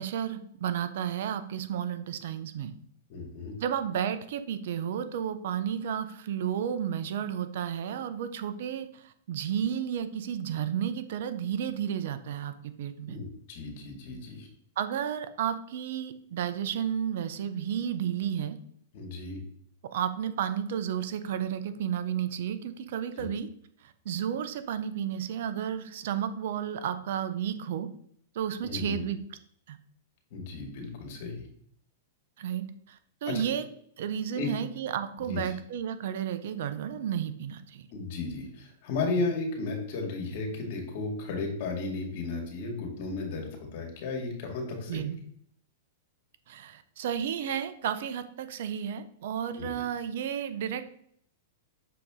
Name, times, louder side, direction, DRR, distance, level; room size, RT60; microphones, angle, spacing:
voice 1, 0.0-2.7 3.6-13.2 14.8-18.6 19.9-23.5 23.8-27.9 28.3-29.2 29.7-29.8 32.4-33.7 34.0-37.9 44.9-45.2 46.5-51.0, right 9 dB, 65° right, 11 dB, 0.7 m, -32 dB
voice 2, 3.1-3.5 13.1-14.5 18.9-19.4 23.1-23.3 28.6-29.0 30.3-31.5 33.3-33.5 34.3-34.5 35.2-35.4 37.9-45.0 49.5-49.8, left 3 dB, 55° left, 2 dB, 2.1 m, -34 dB
6.6 x 4.0 x 3.7 m, 0.65 s
hypercardioid pair, 135°, 0 cm